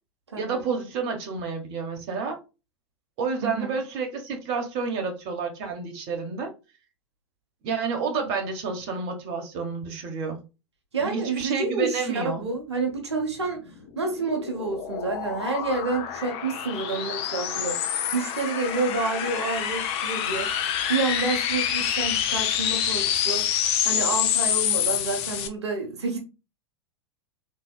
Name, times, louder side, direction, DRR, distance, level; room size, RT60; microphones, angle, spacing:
voice 1, 0.4-2.4 3.2-6.5 7.6-10.4 11.0-12.5, right 5 dB, 50° right, 1.2 m, -30 dB
voice 2, 10.9-13.6 13.9-23.5 23.8-26.2, right 3 dB, 80° right, 1.1 m, -29 dB
sound 1, 13.7-25.5, left 9 dB, 45° left, 0.7 m, -27 dB
3.9 x 3.3 x 2.3 m
figure-of-eight pair, 90°, 14 cm